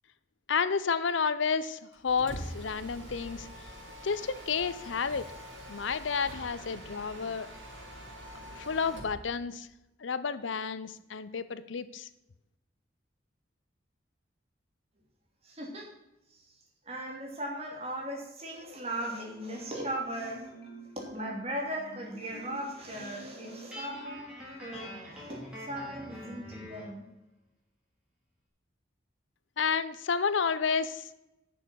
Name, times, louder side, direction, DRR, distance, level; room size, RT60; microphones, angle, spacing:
voice 1, 0.5-3.5 4.0-5.3 5.7-7.5 8.6-9.7 10.0-12.1 29.6-31.1, left 5 dB, 80° left, 14 dB, 0.6 m, -31 dB
Mechanisms, 1.9-9.2, equal, 90° right, 4.0 m, -45 dB
voice 2, 15.4-15.9 16.3-16.5 16.8-20.5 21.1-24.3 24.6-27.1, right 1 dB, 30° right, 0 dB, 2.8 m, -38 dB
Marimba xylophone, 19.6-24.7, equal, 60° left, 2.7 m, -48 dB
Guitar, 23.7-26.9, left 1 dB, 5° right, 3.8 m, -44 dB
10.5 x 7.0 x 6.3 m, 0.91 s
head